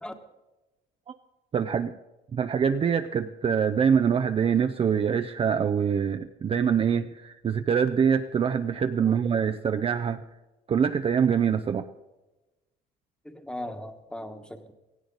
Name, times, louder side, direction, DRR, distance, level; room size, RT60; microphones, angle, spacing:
voice 1, 1.5-2.0 2.3-10.2 10.7-11.9, right 7 dB, 35° right, 8 dB, 0.5 m, -24 dB
voice 2, 13.2-14.7, left 1 dB, 5° left, 7 dB, 1.4 m, -38 dB
17.0 x 16.0 x 4.0 m, 1.1 s
cardioid pair, 110°, 17 cm